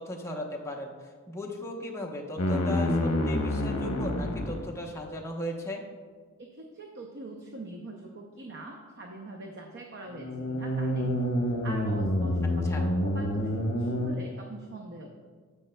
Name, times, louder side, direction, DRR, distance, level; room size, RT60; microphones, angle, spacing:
voice 1, 0.0-5.8 12.6-12.9, left 1 dB, 15° left, -1 dB, 0.9 m, -37 dB
sound 1, 2.4-4.7 10.1-14.1, left 1 dB, 70° left, 0.8 m, -28 dB
voice 2, 6.4-11.3 11.6-15.1, right 2 dB, 50° right, 1 dB, 0.7 m, -43 dB
10.0 x 7.4 x 2.2 m, 1.5 s
head